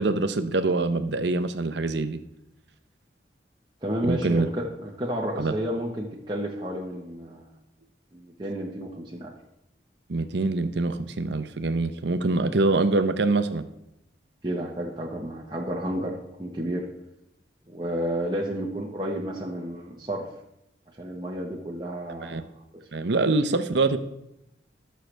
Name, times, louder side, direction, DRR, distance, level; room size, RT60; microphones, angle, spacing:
voice 1, 0.0-2.2 4.0-4.5 5.4-5.5 10.1-13.7 22.2-22.4 22.9-24.0, right 3 dB, 70° right, 11 dB, 0.8 m, -24 dB
voice 2, 3.8-7.5 8.1-9.3 14.4-16.9 17.7-20.3 21.0-22.4, equal, 25° right, -2 dB, 1.1 m, -31 dB
19.0 x 6.6 x 3.3 m, 0.84 s
head